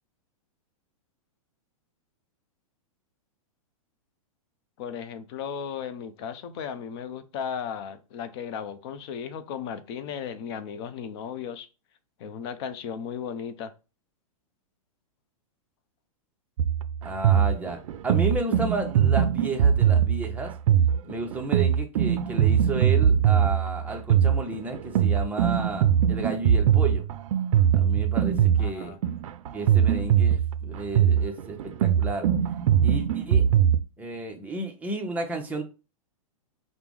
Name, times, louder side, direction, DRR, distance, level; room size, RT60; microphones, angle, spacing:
voice 1, 4.8-11.7 12.2-13.7 28.6-29.0, left 7 dB, 50° left, 0.6 m, -35 dB
sound 1, 16.6-33.8, right 9 dB, 65° right, 0.4 m, -22 dB
voice 2, 17.0-17.8 18.0-20.5 21.0-27.0 27.7-29.0 29.5-32.3 32.8-33.4 34.0-35.6, right 2 dB, 10° right, 0.6 m, -32 dB
4.5 x 2.1 x 3.6 m
hypercardioid pair, 135°, 18 cm